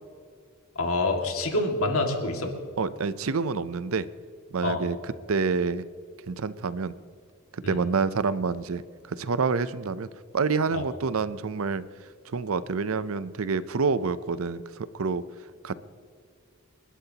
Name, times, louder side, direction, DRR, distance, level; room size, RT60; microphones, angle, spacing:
voice 1, 0.8-2.5 4.6-4.8 7.6-7.8 10.7-10.8, left 2 dB, 75° left, 3 dB, 2.1 m, -26 dB
voice 2, 2.8-4.1 4.5-5.8 6.3-6.9 7.5-8.8 9.1-10.1 10.3-11.8 12.3-14.6 14.9-15.2 15.6-15.7, right 4 dB, 70° right, 15 dB, 0.6 m, -27 dB
27.5 x 12.0 x 2.9 m, 2.2 s
head